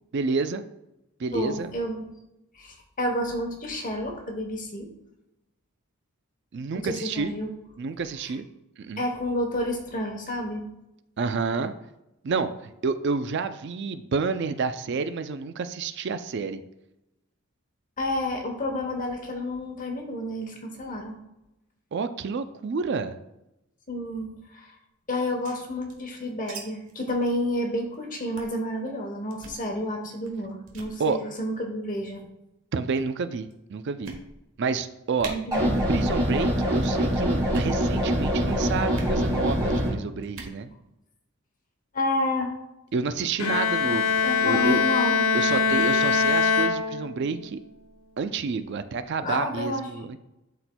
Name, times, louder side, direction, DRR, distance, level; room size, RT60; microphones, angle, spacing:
voice 1, 0.1-0.6 1.2-1.7 6.5-7.3 7.8-8.5 8.8-9.0 11.2-11.7 12.2-16.6 21.9-23.2 31.0-31.2 32.7-34.1 34.6-35.3 35.9-40.7 42.9-44.8 45.3-47.6 48.2-50.2, right 4 dB, 50° right, 11 dB, 0.4 m, -29 dB
voice 2, 1.3-2.0 2.5-4.9 6.8-7.5 8.2-8.3 9.0-10.7 18.0-21.2 23.9-24.7 25.1-32.2 35.3-35.8 41.9-42.5 43.8-45.2 49.2-49.9, left 1 dB, 35° left, 2 dB, 1.0 m, -30 dB
sound 1, 25.2-26.6 26.9-27.0 27.2-27.4 27.8-28.0 28.4-28.6 29.3-29.6 30.2-30.4 30.7-30.9 31.8-32.3 33.0-33.1 33.5-33.6 34.0-34.6 34.9-35.0 35.2-35.3 36.0-36.3 36.5-36.9 37.4-37.8 38.9-39.2 40.2-40.6, right 4 dB, 70° right, 1.3 m, -42 dB
sound 2, 35.5-39.9, equal, 20° right, 2.2 m, -24 dB
Bowed string instrument, 43.4-47.4, left 5 dB, 90° left, 0.8 m, -23 dB
12.0 x 4.3 x 2.2 m, 0.92 s
head